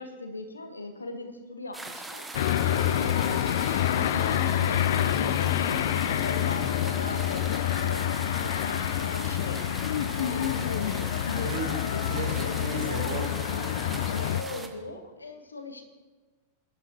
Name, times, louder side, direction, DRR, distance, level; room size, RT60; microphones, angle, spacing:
voice 1, 0.0-2.3 2.6-8.0 8.3-9.7 10.1-12.6 13.8-15.8, left 2 dB, 80° left, 6 dB, 1.5 m, -40 dB
sound 1, 1.7-14.7, right 2 dB, 5° right, 1.3 m, -40 dB
sound 2, 2.3-14.4, left 11 dB, 55° left, 0.4 m, -27 dB
voice 2, 11.4-11.7 12.0-13.8, right 4 dB, 60° right, 3 dB, 2.0 m, -36 dB
23.5 x 11.0 x 3.0 m, 1.3 s
figure-of-eight pair, 90°, 0 cm